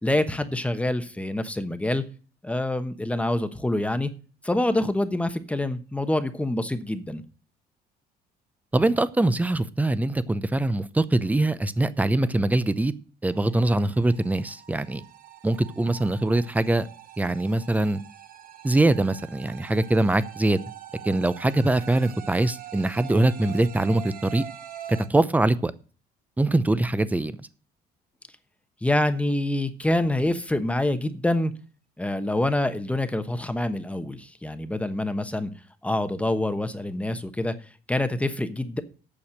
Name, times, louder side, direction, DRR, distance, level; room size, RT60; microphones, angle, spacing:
voice 1, 0.0-2.0 2.4-4.1 4.4-7.2 28.8-31.5 32.0-35.5 35.8-37.5 37.9-38.8, left 1 dB, 10° left, 1.1 m, -26 dB
voice 2, 8.7-12.9 13.2-15.0 15.4-16.9 17.2-18.0 18.6-20.6 21.0-24.4 24.9-25.7 26.4-27.4, right 2 dB, 10° right, 0.7 m, -23 dB
sound 1, 13.2-25.1, right 10 dB, 60° right, 1.3 m, -44 dB
8.8 x 6.4 x 7.6 m
cardioid pair, 110°, 17 cm